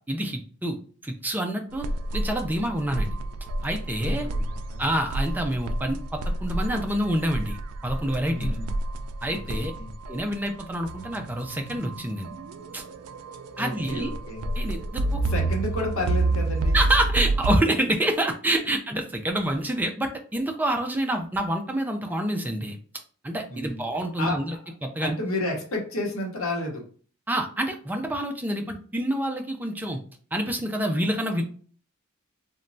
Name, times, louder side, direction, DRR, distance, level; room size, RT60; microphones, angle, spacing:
voice 1, 0.1-0.8 1.0-1.9 2.1-3.1 3.6-4.3 4.8-7.6 7.8-8.6 9.2-9.7 10.1-12.3 12.7-12.8 13.6-14.1 14.6-15.2 16.7-22.8 23.2-25.1 27.3-30.0 30.3-31.4, right 1 dB, 10° right, 3 dB, 0.3 m, -27 dB
sound 1, 1.7-17.6, right 2 dB, 85° right, 0.3 m, -29 dB
voice 2, 4.0-4.8 8.3-8.7 9.3-9.9 13.5-14.5 15.3-16.8 23.5-23.9 24.2-24.4 25.0-26.8, left 1 dB, 70° left, 1 dB, 0.8 m, -31 dB
3.0 x 2.2 x 2.5 m, 0.43 s
head